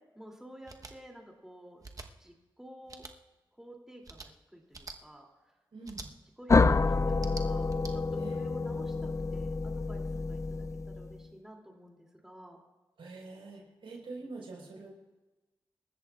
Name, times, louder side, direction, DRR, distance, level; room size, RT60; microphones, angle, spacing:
voice 1, 0.1-3.0 3.6-5.5 6.4-8.0 8.3-12.6, equal, 5° right, 0 dB, 2.7 m, -52 dB
sound 1, 0.7-0.9 1.8-2.1 2.9-3.1 4.0-4.3 4.7-5.0 5.8-6.1 7.1-7.9, right 3 dB, 40° right, 1.0 m, -45 dB
voice 2, 5.7-6.1 8.2-8.5 13.0-14.9, right 3 dB, 90° right, -1 dB, 4.4 m, -45 dB
sound 2, 6.5-11.2, left 3 dB, 35° left, 0.5 m, -28 dB
26.5 x 14.0 x 2.4 m, 1.1 s
cardioid pair, 65°, 9 cm